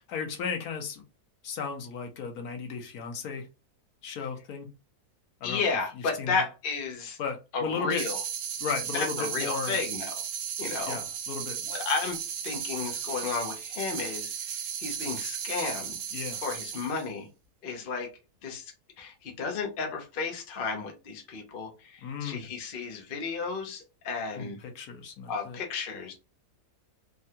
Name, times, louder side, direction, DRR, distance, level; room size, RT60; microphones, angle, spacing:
voice 1, 0.1-1.0 1.4-3.5 4.0-4.7 5.4-5.6 6.2-6.4 7.2-8.0 8.6-9.8 10.9-11.6 16.1-16.4 22.0-22.5 24.3-25.6, left 6 dB, 75° left, 3 dB, 1.2 m, -35 dB
voice 2, 5.4-7.2 7.5-8.2 8.9-10.2 10.6-11.0 11.6-12.2 12.4-16.0 16.4-17.3 17.6-18.1 18.4-24.6 25.3-26.1, left 4 dB, 50° left, 3 dB, 0.7 m, -33 dB
sound 1, 7.9-17.1, right 8 dB, 75° right, 1.1 m, -35 dB
3.5 x 2.2 x 2.7 m, 0.29 s
omnidirectional pair, 1.6 m